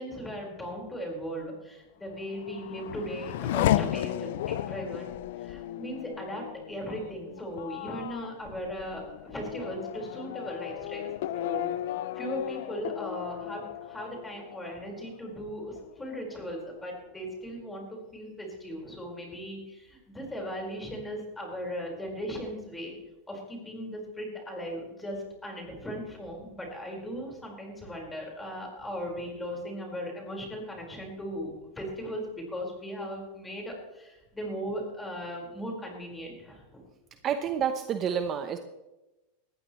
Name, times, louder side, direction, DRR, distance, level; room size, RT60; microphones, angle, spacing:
voice 1, 0.0-11.7 12.1-22.9 23.3-36.8, equal, 10° left, -1 dB, 4.9 m, -38 dB
Race car auto racing / Accelerating revving vroom, 2.1-15.4 15.8-16.5, left 13 dB, 70° left, 0.5 m, -34 dB
voice 2, 37.2-38.6, right 8 dB, 30° right, 7 dB, 0.9 m, -29 dB
19.5 x 14.5 x 3.2 m, 1.0 s
supercardioid pair, 140°, 0 cm